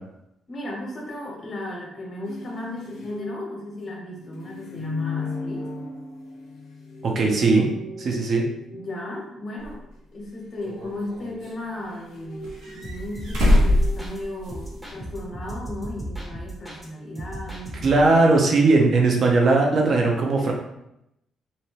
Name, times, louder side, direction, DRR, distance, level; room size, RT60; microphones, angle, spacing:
voice 1, 0.5-5.7 8.7-9.8 10.1-18.1, left 1 dB, 45° left, -2 dB, 1.1 m, -35 dB
sound 1, 2.2-9.5 11.4-14.7, left 4 dB, 80° left, 0.5 m, -38 dB
voice 2, 7.0-7.7 8.0-8.5 17.8-20.5, right 3 dB, 50° right, 1 dB, 0.7 m, -19 dB
sound 2, 9.6-9.7 10.6-11.5 12.4-14.8 15.1-15.2 16.7-16.8, left 1 dB, 75° right, 0.9 m, -23 dB
sound 3, 12.8-14.2 14.5-16.9 17.1-18.2, right 1 dB, 5° right, 0.8 m, -36 dB
2.7 x 2.2 x 3.1 m, 0.82 s
cardioid pair, 90°, 0 cm